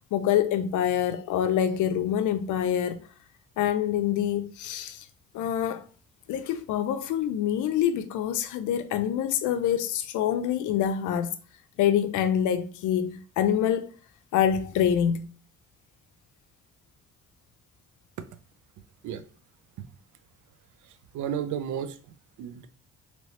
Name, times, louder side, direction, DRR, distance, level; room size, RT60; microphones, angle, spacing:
voice 1, 0.1-3.0 3.6-5.0 5.3-5.8 6.3-11.4 11.8-13.9 14.3-15.3, left 9 dB, 80° left, 0.5 m, -26 dB
voice 2, 20.8-22.7, right 9 dB, 80° right, 0.5 m, -34 dB
3.1 x 2.9 x 2.8 m
cardioid pair, 90°, 30 cm